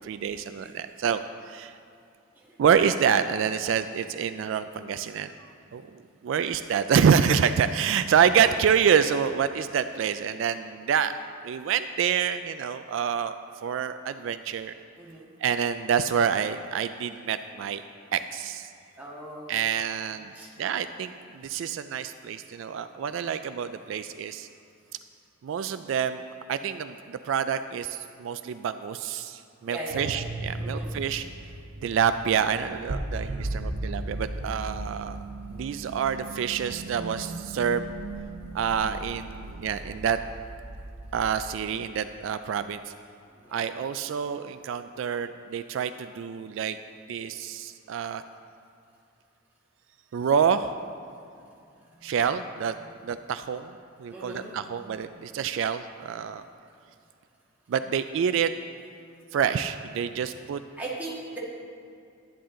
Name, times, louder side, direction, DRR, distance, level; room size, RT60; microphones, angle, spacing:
voice 1, 0.0-1.8 2.6-5.8 6.2-11.1 11.4-13.3 13.6-14.7 15.4-17.8 18.1-18.7 19.5-20.3 20.6-24.5 25.4-26.2 26.5-31.3 31.8-35.2 35.5-37.8 38.5-40.2 41.1-42.9 43.5-46.8 47.1-48.2 50.1-50.7 52.0-52.8 53.0-53.7 54.0-56.4 57.7-58.5 59.3-60.6, right 7 dB, 70° right, 10 dB, 0.3 m, -27 dB
voice 2, 15.0-15.3 19.0-19.6 20.3-20.5 29.7-30.1 30.6-30.9 43.3-43.6 54.1-54.5 60.8-61.4, right 2 dB, 10° right, -6 dB, 1.6 m, -38 dB
sound 1, 29.9-41.3, right 2 dB, 85° right, 0.8 m, -36 dB
10.0 x 10.0 x 3.8 m, 2.5 s
head